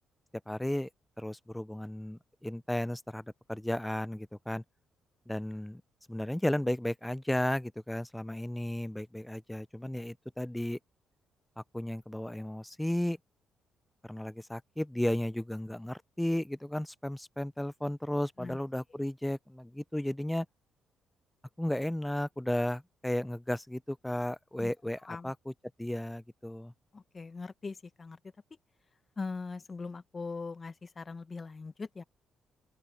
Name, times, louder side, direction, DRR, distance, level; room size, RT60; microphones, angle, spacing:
voice 1, 0.5-0.9 1.2-4.6 5.3-5.8 6.1-10.8 11.7-13.2 14.0-20.5 21.6-25.5 25.8-26.7, left 1 dB, 5° left, 0.4 m, -34 dB
voice 2, 26.9-28.2 29.2-32.0, left 4 dB, 30° left, 1.1 m, -40 dB
open air
cardioid pair, 90°, 0 cm